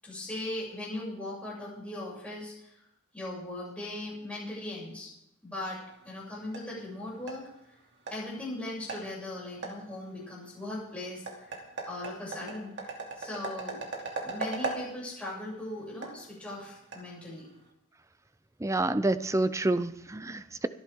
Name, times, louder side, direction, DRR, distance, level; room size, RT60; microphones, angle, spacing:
voice 1, 0.0-2.8 3.1-5.1 5.4-5.8 6.0-7.4 8.1-11.6 11.9-13.8 14.2-17.5, left 1 dB, 5° left, -6 dB, 7.3 m, -39 dB
sound 1, 5.9-17.7, right 3 dB, 55° right, 2.8 m, -41 dB
voice 2, 18.6-20.7, right 2 dB, 15° right, 13 dB, 0.5 m, -28 dB
23.5 x 10.5 x 3.7 m, 0.83 s
head